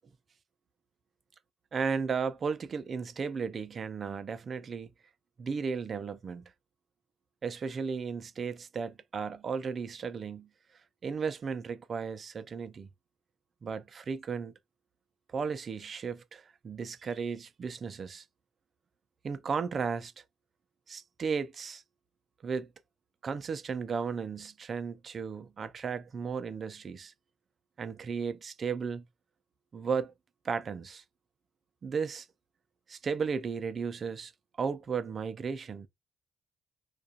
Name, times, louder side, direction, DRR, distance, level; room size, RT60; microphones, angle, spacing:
voice 1, 1.7-4.9 5.4-6.5 7.4-10.5 11.0-12.9 13.6-14.5 15.3-18.2 19.2-20.1 20.9-21.8 22.4-22.7 23.2-27.1 27.8-29.0 29.7-30.1 30.4-31.0 31.8-32.3 32.9-34.3 34.6-35.9, right 5 dB, 45° right, 0.4 m, -35 dB
2.3 x 2.3 x 2.5 m
cardioid pair, 90°, 0 cm